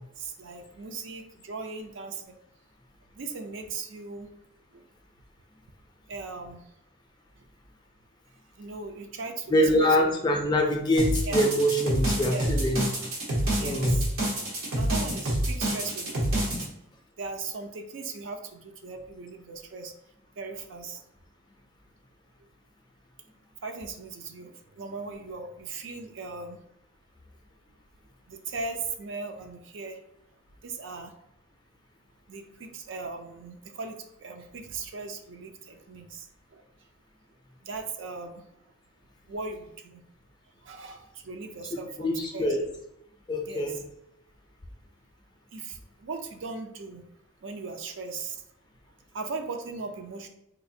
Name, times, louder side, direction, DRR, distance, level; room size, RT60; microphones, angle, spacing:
voice 1, 0.2-2.3 3.2-4.3 4.7-4.8 6.1-6.6 8.6-10.0 11.3-11.4 12.2-12.5 13.5-14.1 14.8-16.1 16.4-16.7 17.2-19.9 20.4-21.0 23.6-26.6 28.3-30.0 30.6-31.1 32.3-36.3 36.5-36.6 37.6-38.5 39.3-40.0 40.6-42.6 43.5-43.8 45.5-47.0 47.4-48.4 49.1-50.3, right 4 dB, 65° right, 5 dB, 0.4 m, -38 dB
voice 2, 9.5-12.9 13.6-14.0 41.7-42.6 43.3-43.8, equal, 20° left, 1 dB, 0.4 m, -24 dB
sound 1, 11.0-16.6, right 1 dB, 85° right, 1.0 m, -27 dB
4.0 x 2.4 x 2.6 m, 0.83 s
head